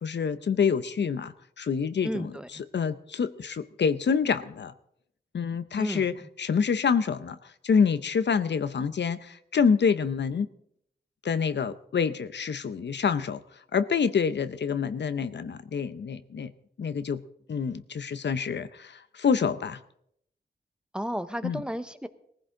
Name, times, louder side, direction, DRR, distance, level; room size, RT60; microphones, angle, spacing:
voice 1, 0.0-2.3 2.7-4.7 5.3-10.5 11.2-13.4 13.7-16.5 16.8-17.2 17.5-19.8 21.4-21.6, left 6 dB, 75° left, 12 dB, 0.7 m, -27 dB
voice 2, 2.0-2.6 5.8-6.2 20.9-22.1, equal, 5° right, 10 dB, 1.0 m, -33 dB
18.5 x 15.0 x 3.8 m, 0.71 s
cardioid pair, 65°, 18 cm